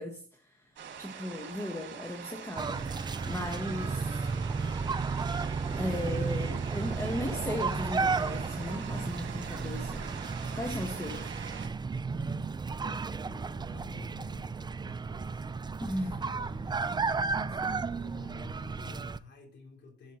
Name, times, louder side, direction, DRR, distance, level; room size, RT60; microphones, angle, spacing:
voice 1, 0.0-2.8 3.2-4.2 5.7-10.1 10.5-11.3 15.8-16.2, left 1 dB, 15° left, 1.4 m, -36 dB
sound 1, 0.8-11.7, right 7 dB, 65° right, 2.4 m, -44 dB
sound 2, 2.6-19.2, right 4 dB, 20° right, 0.5 m, -33 dB
voice 2, 12.1-15.5 16.1-17.1 17.4-20.2, left 4 dB, 65° left, 3.6 m, -52 dB
11.0 x 7.2 x 4.0 m
cardioid pair, 90°, 20 cm